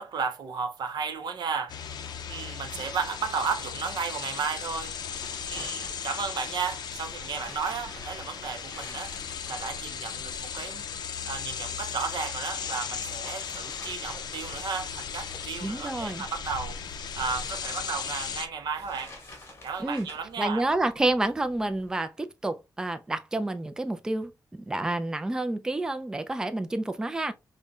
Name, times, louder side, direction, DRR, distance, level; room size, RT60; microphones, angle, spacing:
voice 1, 0.0-1.8 2.3-4.9 5.5-10.8 11.3-19.2 19.6-20.7, right 6 dB, 90° right, 0.6 m, -34 dB
sound 1, 1.7-18.5, left 7 dB, 75° left, 0.4 m, -37 dB
sound 2, 4.6-21.9, left 2 dB, 35° left, 1.2 m, -50 dB
voice 2, 15.6-16.2 19.8-20.1 20.4-27.3, right 2 dB, 10° right, 0.3 m, -29 dB
5.2 x 2.1 x 2.3 m
wide cardioid pair, 145°, 7 cm